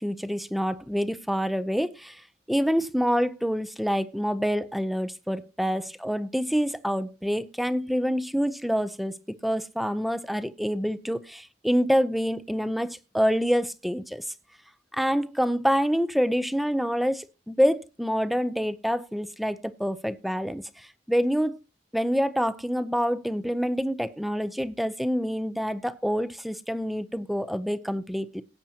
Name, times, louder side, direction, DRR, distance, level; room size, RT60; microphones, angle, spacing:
voice 1, 0.0-2.2 2.5-9.1 9.4-14.3 14.9-21.6 21.9-28.4, equal, ahead, 14 dB, 0.5 m, -27 dB
18.0 x 8.8 x 2.8 m, 0.30 s
head